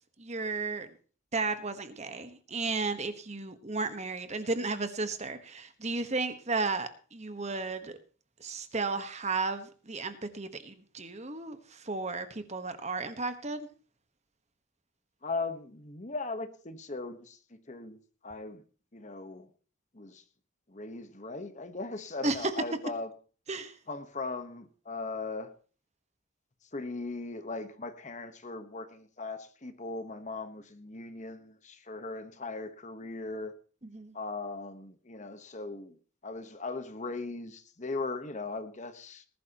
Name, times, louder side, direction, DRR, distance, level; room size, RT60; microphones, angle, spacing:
voice 1, 0.2-0.9 1.3-8.0 8.4-13.7 22.2-22.5 23.5-23.7 33.9-34.1, right 3 dB, 35° right, 10 dB, 1.3 m, -34 dB
voice 2, 15.2-18.0 18.2-18.6 18.9-19.5 19.9-20.2 20.7-23.1 23.9-25.5 26.7-33.5 34.1-36.0 36.2-39.3, left 3 dB, 35° left, 10 dB, 1.2 m, -38 dB
19.5 x 12.0 x 3.0 m, 0.39 s
head